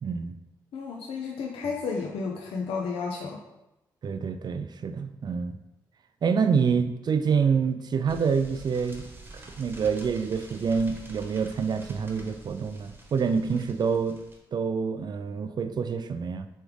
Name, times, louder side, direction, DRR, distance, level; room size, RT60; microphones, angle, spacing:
voice 1, 0.0-0.3 4.0-5.6 6.2-9.1 9.3-14.2 14.5-16.5, right 6 dB, 45° right, 10 dB, 0.4 m, -27 dB
voice 2, 0.7-3.4, left 5 dB, 70° left, -1 dB, 0.5 m, -32 dB
sound 1, 8.1-14.4, right 2 dB, 20° right, 1.1 m, -46 dB
3.4 x 3.2 x 3.2 m, 0.95 s
hypercardioid pair, 40°, 10 cm